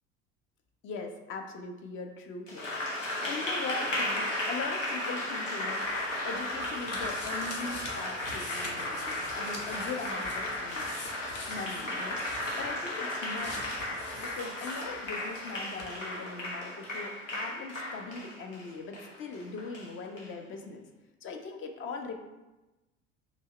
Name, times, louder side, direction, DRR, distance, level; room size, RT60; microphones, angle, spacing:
voice 1, 0.8-2.7 3.3-5.9 6.2-10.9 11.5-12.2 12.5-13.7 14.2-20.9 21.2-22.1, left 4 dB, 35° left, 4 dB, 0.6 m, -40 dB
Applause, 2.5-20.3, left 1 dB, 85° left, 0.8 m, -35 dB
sound 1, 5.9-15.5 15.8-15.9, left 2 dB, 50° left, 0.9 m, -45 dB
2.9 x 2.7 x 4.3 m, 1.1 s
figure-of-eight pair, 65°, 37 cm